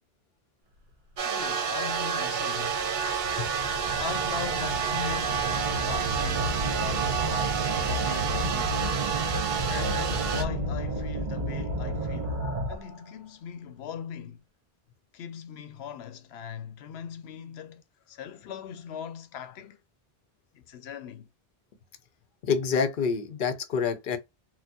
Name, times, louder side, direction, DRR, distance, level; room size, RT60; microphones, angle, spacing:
voice 1, 1.2-3.0 4.0-8.9 9.7-14.4 15.1-19.8 20.5-21.3, left 8 dB, 90° left, 0.9 m, -40 dB
sound 1, 1.2-10.4, right 7 dB, 70° right, 0.9 m, -29 dB
sound 2, 1.6-1.7 2.3-13.0, right 1 dB, 50° right, 1.0 m, -32 dB
voice 2, 22.4-24.2, left 6 dB, 60° left, 0.7 m, -27 dB
4.2 x 2.2 x 2.8 m
omnidirectional pair, 1.0 m